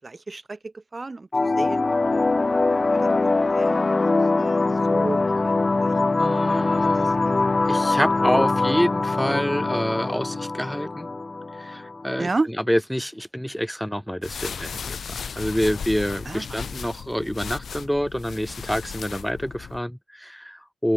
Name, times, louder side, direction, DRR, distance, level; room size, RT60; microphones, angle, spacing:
voice 1, 0.0-1.8 2.1-2.5 2.9-3.1 3.4-4.0 4.4-5.9 6.8-7.8 12.2-12.5 16.2-16.4, right 3 dB, 35° right, 6.7 m, -33 dB
sound 1, 1.3-12.3, left 3 dB, 35° left, 0.8 m, -22 dB
voice 2, 6.2-7.2 7.7-11.1 11.6-20.9, equal, ahead, 1.9 m, -27 dB
sound 2, 14.2-19.8, left 6 dB, 75° left, 7.2 m, -35 dB
open air
wide cardioid pair, 85°, 0 cm